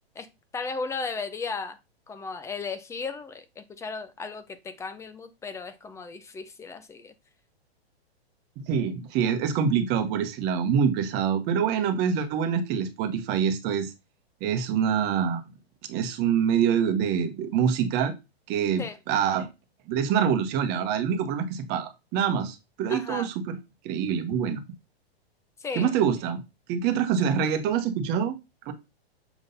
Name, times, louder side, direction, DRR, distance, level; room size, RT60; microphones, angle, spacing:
voice 1, 0.5-1.8 2.1-7.1 18.8-19.0 22.9-23.3 25.6-25.9, left 4 dB, 10° left, 11 dB, 0.6 m, -35 dB
voice 2, 8.7-13.9 14.4-15.4 15.9-18.1 18.5-19.5 19.9-23.6 23.8-24.6 25.7-26.4 26.7-28.4 28.7-28.8, right 7 dB, 30° right, 8 dB, 1.3 m, -25 dB
7.1 x 3.7 x 4.1 m, 0.25 s
hypercardioid pair, 140°, 32 cm